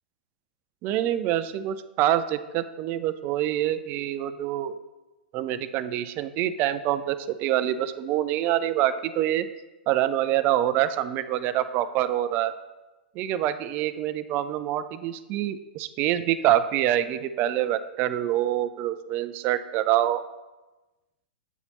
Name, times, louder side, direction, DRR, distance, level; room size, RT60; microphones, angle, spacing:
voice 1, 0.8-4.7 5.3-9.5 9.9-12.5 13.2-20.2, right 12 dB, 35° right, 12 dB, 0.3 m, -26 dB
7.9 x 4.0 x 3.0 m, 1.1 s
figure-of-eight pair, 105°, 6 cm